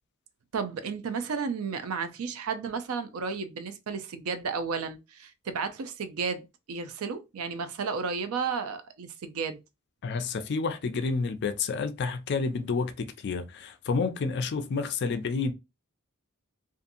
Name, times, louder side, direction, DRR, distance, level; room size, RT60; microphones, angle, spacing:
voice 1, 0.5-9.6, right 5 dB, 75° right, 0.4 m, -33 dB
voice 2, 10.0-15.5, left 4 dB, 50° left, 0.4 m, -29 dB
2.6 x 2.4 x 2.6 m
head